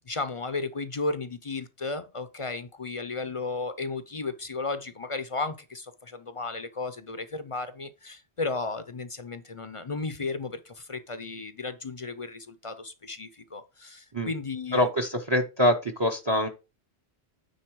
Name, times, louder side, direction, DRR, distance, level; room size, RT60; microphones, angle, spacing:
voice 1, 0.1-14.9, left 3 dB, 35° left, 0.6 m, -34 dB
voice 2, 14.7-16.5, equal, 30° right, 0.7 m, -24 dB
9.4 x 4.0 x 4.6 m
omnidirectional pair, 1.1 m